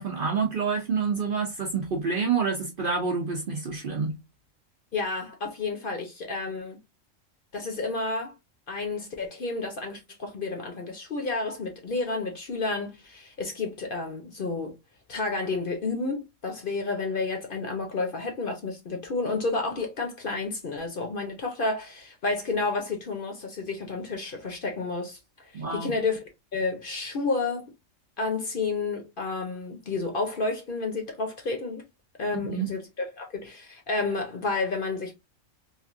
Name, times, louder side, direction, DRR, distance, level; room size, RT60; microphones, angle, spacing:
voice 1, 0.0-4.2 25.5-25.9 32.5-32.7, right 5 dB, 55° right, 0.6 m, -28 dB
voice 2, 4.9-6.8 7.5-8.3 8.7-14.8 15.1-26.2 26.5-27.7 28.2-31.8 32.2-35.1, left 3 dB, 50° left, 0.8 m, -31 dB
3.2 x 2.5 x 2.4 m
omnidirectional pair, 1.4 m